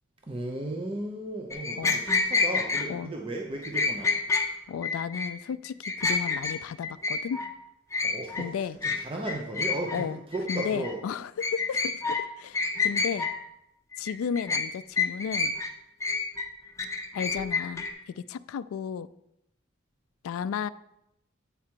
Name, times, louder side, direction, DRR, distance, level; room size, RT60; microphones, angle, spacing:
voice 1, 0.3-4.1 8.0-11.0, right 1 dB, 25° right, 1 dB, 0.6 m, -35 dB
sound 1, 1.5-2.9 3.6-4.5 4.8-5.3 5.6-6.6 6.8-7.5 7.9-8.4 8.8-9.0 9.3-10.0 10.3-10.9 11.4-12.2 12.5-13.3 13.9-14.7 15.0-15.7 16.0-17.9, left 4 dB, 15° left, 0.6 m, -28 dB
voice 2, 4.7-7.4 8.4-8.8 9.9-10.2 10.5-13.3 14.0-15.5 17.1-19.1 20.2-20.7, left 7 dB, 90° left, 16 dB, 0.3 m, -34 dB
8.3 x 4.9 x 4.5 m, 0.85 s
head